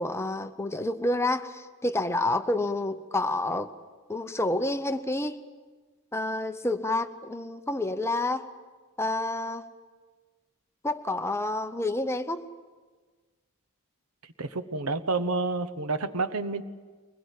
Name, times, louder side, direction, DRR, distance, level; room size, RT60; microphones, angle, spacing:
voice 1, 0.0-3.7 4.1-5.4 6.1-8.5 9.0-9.6 10.8-12.5, left 2 dB, 10° left, 9 dB, 0.8 m, -29 dB
voice 2, 14.4-16.6, right 3 dB, 75° right, 13 dB, 1.0 m, -29 dB
22.5 x 21.0 x 8.3 m, 1.4 s
head